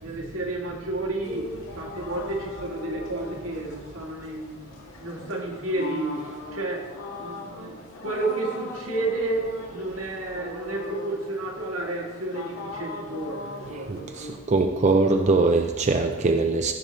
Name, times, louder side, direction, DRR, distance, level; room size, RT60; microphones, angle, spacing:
voice 1, 0.0-4.7 5.0-14.1, right 2 dB, 80° right, 0 dB, 1.8 m, -31 dB
sound 1, 1.2-14.4, left 2 dB, 80° left, 1.7 m, -39 dB
voice 2, 13.9-16.7, right 3 dB, 35° right, 5 dB, 0.4 m, -22 dB
15.0 x 6.5 x 3.2 m, 1.3 s
head